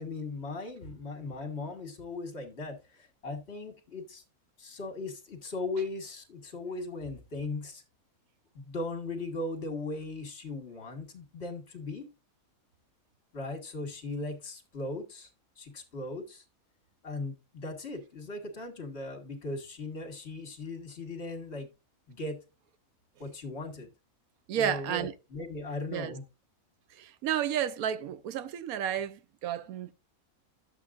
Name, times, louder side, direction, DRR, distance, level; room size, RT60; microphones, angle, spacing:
voice 1, 0.0-4.2 4.6-7.8 8.6-12.1 13.3-15.3 15.6-16.4 17.0-21.7 22.1-22.4 23.2-23.9 24.5-26.2, left 2 dB, 50° left, 1.8 m, -38 dB
voice 2, 24.5-25.1 25.9-26.1 26.9-29.9, right 10 dB, 80° right, 1.1 m, -32 dB
11.0 x 7.4 x 2.4 m
omnidirectional pair, 1.5 m